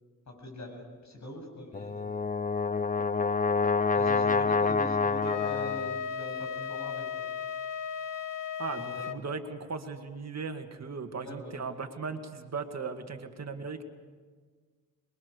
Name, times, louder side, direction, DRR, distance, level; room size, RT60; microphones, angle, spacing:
voice 1, 0.3-2.1 3.9-7.1 8.8-9.0 11.2-11.7, left 1 dB, 60° left, 2 dB, 7.6 m, -43 dB
Brass instrument, 1.7-6.0, left 4 dB, 25° left, 0.7 m, -27 dB
Wind instrument woodwind instrument, 5.2-9.2, left 8 dB, 85° left, 1.0 m, -35 dB
voice 2, 8.6-13.8, right 4 dB, 55° right, 6 dB, 2.1 m, -37 dB
28.0 x 22.0 x 6.7 m, 1.5 s
cardioid pair, 80°, 32 cm